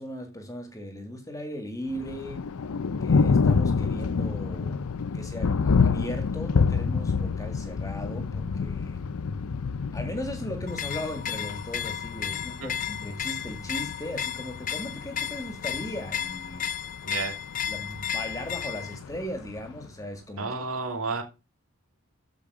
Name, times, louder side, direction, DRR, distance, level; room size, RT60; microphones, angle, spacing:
voice 1, 0.0-2.4 3.0-4.9 5.1-9.0 9.9-16.7 17.7-20.5, equal, 15° left, 2.0 m, -37 dB
Thunder, 1.9-19.9, left 5 dB, 75° left, 0.5 m, -28 dB
sound 1, 10.7-19.0, left 9 dB, 35° left, 0.7 m, -34 dB
voice 2, 17.0-17.4 20.4-21.2, right 4 dB, 65° right, 2.8 m, -31 dB
14.0 x 5.2 x 4.9 m
head